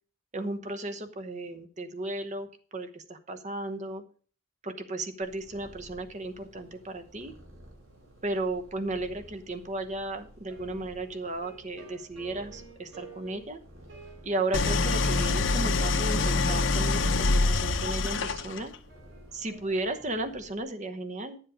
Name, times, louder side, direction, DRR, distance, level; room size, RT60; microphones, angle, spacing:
voice 1, 0.3-4.0 4.6-7.3 8.2-13.6 14.2-18.7 19.3-21.4, right 2 dB, 35° right, 8 dB, 1.0 m, -34 dB
Purr, 5.2-20.6, equal, 80° right, 3.0 m, -53 dB
sound 1, 10.5-20.0, right 4 dB, 60° right, 3.5 m, -51 dB
Idling, 14.5-18.8, left 3 dB, 65° left, 0.8 m, -25 dB
10.5 x 7.4 x 5.1 m, 0.42 s
head